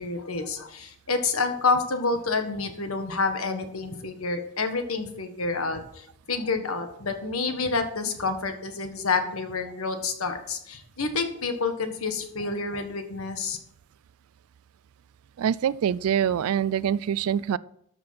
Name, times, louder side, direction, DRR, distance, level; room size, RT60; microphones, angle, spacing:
voice 1, 0.0-13.6, left 4 dB, 85° left, 7 dB, 1.5 m, -28 dB
voice 2, 15.4-17.6, right 8 dB, 85° right, 19 dB, 0.3 m, -25 dB
13.0 x 6.0 x 5.8 m, 0.72 s
head